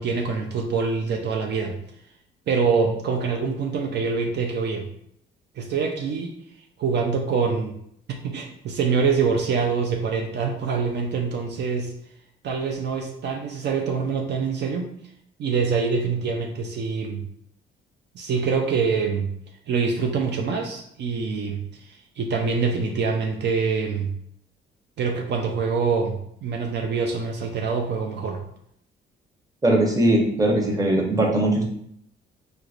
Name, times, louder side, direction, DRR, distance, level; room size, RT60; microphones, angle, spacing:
voice 1, 0.0-1.8 2.5-4.9 5.6-6.3 6.8-7.8 8.1-11.9 12.4-14.9 15.4-17.2 18.1-19.3 19.7-24.1 25.0-28.4, right 5 dB, 60° right, 2 dB, 0.5 m, -25 dB
voice 2, 29.6-31.6, right 1 dB, 20° right, -1 dB, 0.8 m, -20 dB
4.5 x 2.1 x 2.4 m, 0.71 s
cardioid pair, 90°, 20 cm